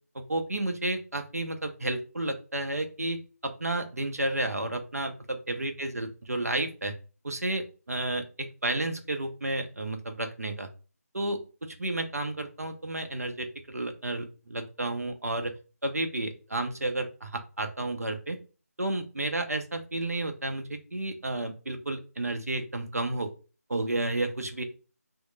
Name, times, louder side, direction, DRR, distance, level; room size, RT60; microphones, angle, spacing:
voice 1, 0.1-6.9 7.2-10.7 11.1-15.5 15.8-18.4 18.8-23.3 23.7-24.6, right 2 dB, 70° right, 6 dB, 0.6 m, -32 dB
3.0 x 2.1 x 4.1 m, 0.35 s
figure-of-eight pair, 160°, 9 cm